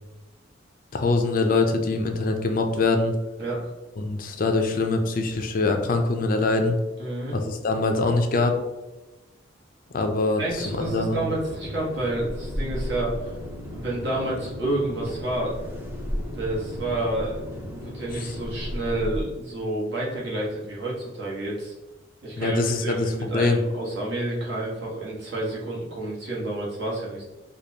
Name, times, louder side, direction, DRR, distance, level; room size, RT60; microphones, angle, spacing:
voice 1, 0.9-3.1 4.0-6.8 7.5-8.6 9.9-11.2 18.2-18.3 22.4-23.6, left 3 dB, 45° left, 5 dB, 0.4 m, -23 dB
voice 2, 3.4-3.7 7.0-7.3 9.9-10.0 10.4-13.3 13.6-15.6 16.3-21.7 22.2-27.2, right 1 dB, 60° right, -5 dB, 1.3 m, -29 dB
sound 1, 10.4-19.3, equal, 10° right, 0.5 m, -34 dB
5.0 x 2.3 x 2.8 m, 1.1 s
head